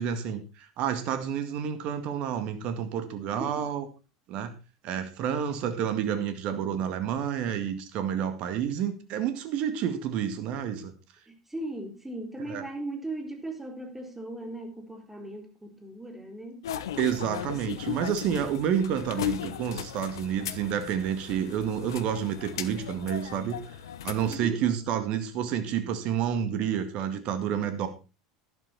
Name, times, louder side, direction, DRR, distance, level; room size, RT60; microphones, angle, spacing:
voice 1, 0.0-3.9 4.3-4.5 4.8-10.9 12.5-12.6 17.0-23.6 24.0-27.9, right 8 dB, 50° right, 2.0 m, -29 dB
voice 2, 11.3-16.7 24.3-24.7, right 2 dB, 10° right, 3.7 m, -38 dB
sound 1, 16.6-24.4, left 10 dB, 70° left, 1.0 m, -37 dB
12.0 x 11.5 x 4.3 m
figure-of-eight pair, 75°, 2 cm